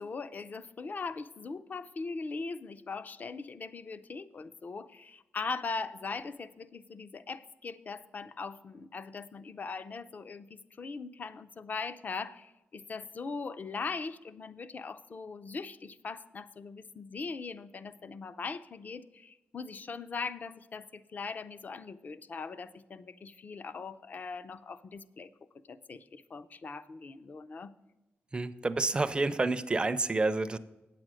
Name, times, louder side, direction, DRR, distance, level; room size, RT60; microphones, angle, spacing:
voice 1, 0.0-25.3 25.7-27.7, left 4 dB, 40° left, 13 dB, 0.4 m, -40 dB
voice 2, 28.3-30.6, right 3 dB, 20° right, 13 dB, 0.4 m, -29 dB
8.8 x 7.7 x 6.2 m, 1.1 s
wide cardioid pair, 135°, 4 cm